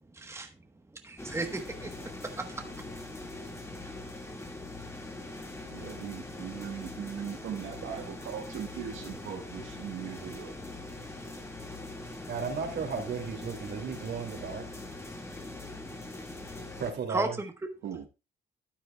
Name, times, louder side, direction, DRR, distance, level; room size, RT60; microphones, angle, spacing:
voice 1, 0.1-0.5 1.0-1.9 2.2-2.6 17.1-17.5, right 3 dB, 15° right, 1.1 m, -34 dB
sound 1, 1.2-16.9, left 2 dB, 15° left, 1.9 m, -42 dB
voice 2, 5.7-10.5 17.8-18.1, right 9 dB, 85° right, 1.3 m, -39 dB
voice 3, 12.3-14.7 16.8-17.4, right 5 dB, 60° right, 2.5 m, -34 dB
13.0 x 8.7 x 2.3 m
cardioid pair, 90°, 20 cm